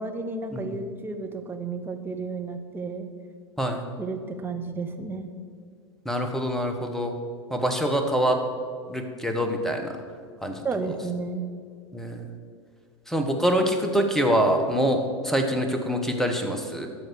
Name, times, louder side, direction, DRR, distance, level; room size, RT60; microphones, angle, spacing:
voice 1, 0.0-3.1 4.0-5.3 10.6-11.4, right 3 dB, 15° right, 5 dB, 0.9 m, -32 dB
voice 2, 6.0-7.1 7.5-8.4 8.9-9.9 10.4-10.6 11.9-12.3 13.1-16.9, equal, 5° left, 5 dB, 1.1 m, -25 dB
13.0 x 4.8 x 6.3 m, 2.1 s
figure-of-eight pair, 85°, 15 cm